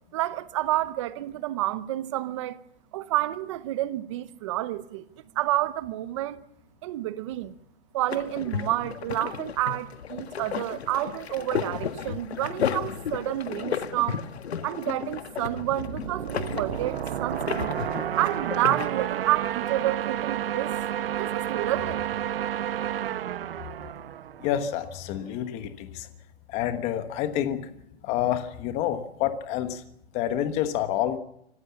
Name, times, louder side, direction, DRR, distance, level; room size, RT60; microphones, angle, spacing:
voice 1, 0.1-2.6 2.9-5.0 5.3-6.4 6.8-7.5 7.9-14.2 14.6-17.8 18.2-20.8 21.0-22.1, right 15 dB, 30° right, 0.9 m, -29 dB
sound 1, 8.1-18.9, left 7 dB, 90° left, 1.7 m, -33 dB
sound 2, 15.4-25.0, right 11 dB, 65° right, 1.0 m, -31 dB
voice 2, 24.4-26.1 26.5-27.7 28.0-29.8 30.1-31.2, left 11 dB, 20° left, 1.3 m, -28 dB
26.0 x 14.5 x 7.1 m
hypercardioid pair, 165°, 31 cm